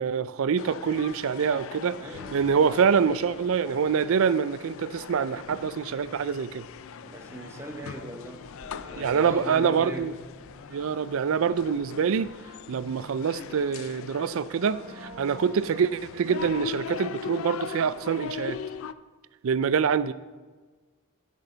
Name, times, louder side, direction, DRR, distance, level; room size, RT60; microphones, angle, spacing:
voice 1, 0.0-2.0 2.3-6.7 9.0-10.1 10.7-12.3 12.7-18.6 19.4-20.1, right 6 dB, 70° right, 0.4 m, -25 dB
sound 1, 0.6-18.9, left 6 dB, 65° left, 0.4 m, -40 dB
voice 2, 2.0-2.4 7.0-10.1, right 1 dB, 15° right, 1.1 m, -40 dB
Beverages Explained, 5.9-16.7, right 1 dB, 45° right, 1.4 m, -50 dB
16.0 x 6.4 x 4.0 m
head